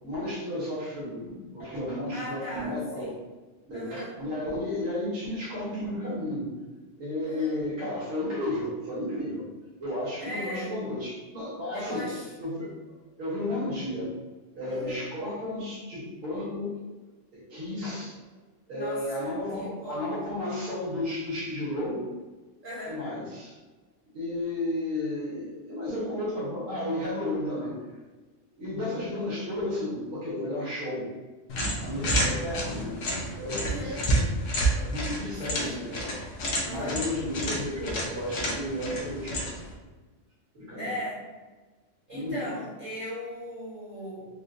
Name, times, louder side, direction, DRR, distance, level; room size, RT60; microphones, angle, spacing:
voice 1, 0.0-3.1 3.7-6.5 7.0-9.4 9.8-12.1 12.4-12.7 13.2-14.1 14.5-16.8 17.3-18.2 18.7-22.1 22.9-23.5 24.1-27.8 28.6-31.1 31.8-33.0 33.3-34.2 34.7-36.2 36.6-39.5 40.5-40.9 42.1-42.5, left 1 dB, 85° right, -9 dB, 1.5 m, -33 dB
voice 2, 2.1-3.2 3.7-4.1 7.2-7.6 10.2-10.7 11.7-12.3 14.6-15.1 18.7-20.2 22.6-23.0 33.6-34.1 35.5-35.9 36.6-37.0 40.7-41.2 42.1-44.3, equal, 45° right, -8 dB, 0.9 m, -38 dB
sound 1, 31.5-39.7, right 1 dB, 80° left, 1.0 m, -30 dB
3.7 x 2.1 x 2.6 m, 1.3 s
omnidirectional pair, 1.3 m